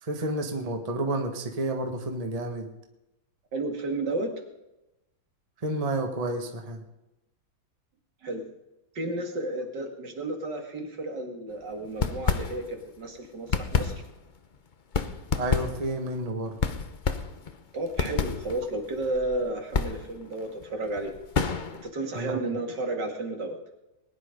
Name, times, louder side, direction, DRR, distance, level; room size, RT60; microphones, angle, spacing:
voice 1, 0.0-2.7 5.6-6.8 15.3-16.6 22.1-22.6, right 1 dB, 20° right, 4 dB, 1.3 m, -30 dB
voice 2, 3.5-4.3 8.2-8.4 8.9-13.9 17.7-21.1 21.8-23.6, right 2 dB, 65° right, 3 dB, 2.7 m, -32 dB
sound 1, 11.8-12.9 13.2-21.9, left 5 dB, 50° left, 0.5 m, -30 dB
20.5 x 10.5 x 5.2 m, 0.93 s
omnidirectional pair, 2.1 m